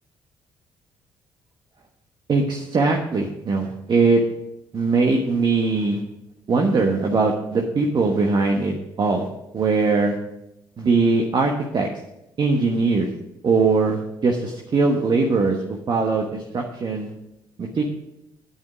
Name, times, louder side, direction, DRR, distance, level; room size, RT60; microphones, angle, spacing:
voice 1, 2.3-4.2 4.7-6.0 6.5-9.3 9.5-10.2 10.8-11.9 12.4-13.1 13.4-15.6 15.9-17.1 17.6-17.9, right 3 dB, 45° right, 1 dB, 1.3 m, -21 dB
9.2 x 8.5 x 5.0 m, 0.88 s
hypercardioid pair, 55°, 11 cm